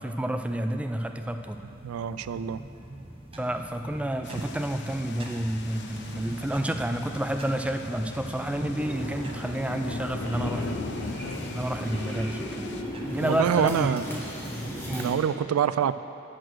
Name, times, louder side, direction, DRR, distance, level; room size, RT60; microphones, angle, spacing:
voice 1, 0.0-1.6 3.4-11.1 11.5-12.4 13.1-14.2 14.9-15.1, right 1 dB, 5° right, 6 dB, 0.3 m, -30 dB
sound 1, 0.7-15.1, right 1 dB, 25° right, 0.8 m, -41 dB
voice 2, 1.8-2.6 4.3-4.4 13.2-14.0 15.0-15.9, right 8 dB, 85° right, 13 dB, 0.3 m, -26 dB
sound 2, 4.2-12.8, left 3 dB, 55° left, 0.5 m, -40 dB
sound 3, 8.7-15.1, equal, 10° left, 1.6 m, -37 dB
8.7 x 6.3 x 6.2 m, 2.9 s
head